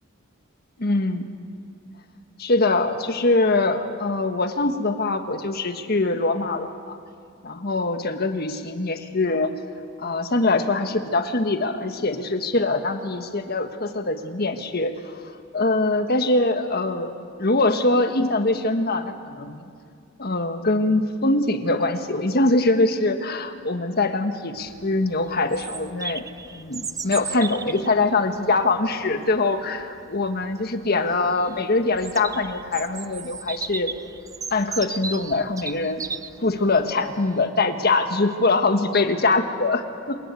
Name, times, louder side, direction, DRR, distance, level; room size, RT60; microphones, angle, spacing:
voice 1, 0.8-1.3 2.4-7.0 7.4-9.5 10.0-15.2 15.5-19.6 20.2-33.9 34.5-36.0 36.4-40.2, left 2 dB, 50° left, 7 dB, 1.5 m, -23 dB
Bird vocalization bird call bird song, 24.6-37.3, right 5 dB, 15° right, 0.6 m, -37 dB
27.0 x 19.5 x 8.4 m, 2.3 s
head